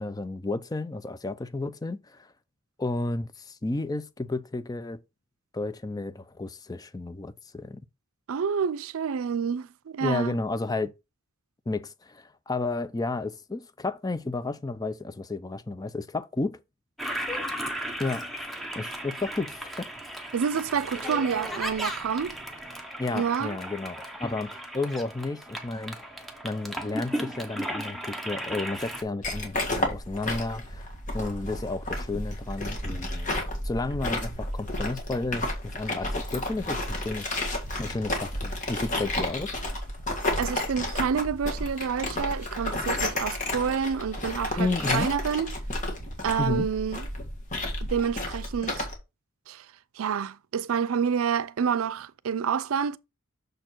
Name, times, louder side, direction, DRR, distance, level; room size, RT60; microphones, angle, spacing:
voice 1, 0.0-2.3 2.8-5.0 5.5-7.8 10.0-10.9 11.7-16.6 18.0-18.3 18.7-19.9 23.0-26.0 26.4-30.9 31.1-37.3 37.8-39.5 44.6-45.1 46.4-46.7, left 3 dB, 20° left, 0.4 m, -32 dB
voice 2, 8.3-10.4 20.3-22.4 23.1-23.6 40.4-45.5 46.2-47.1 47.8-48.9 49.5-49.7 50.0-53.0, right 7 dB, 85° right, 0.4 m, -28 dB
Toilet flush, 17.0-29.0, equal, ahead, 0.9 m, -35 dB
sound 1, 29.2-48.9, left 1 dB, 35° left, 1.7 m, -32 dB
6.5 x 4.4 x 4.4 m
head